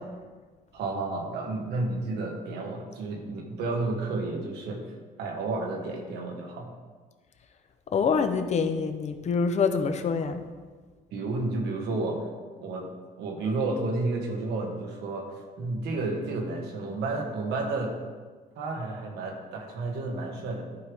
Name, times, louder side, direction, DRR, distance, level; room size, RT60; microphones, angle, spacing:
voice 1, 0.7-4.9 5.2-6.7 11.1-12.3 12.6-12.9 13.2-18.0 18.5-20.6, right 2 dB, 80° right, 1 dB, 1.6 m, -31 dB
voice 2, 7.9-10.4, left 5 dB, 40° left, 8 dB, 0.8 m, -26 dB
14.0 x 4.7 x 3.5 m, 1.4 s
cardioid pair, 110°, 17 cm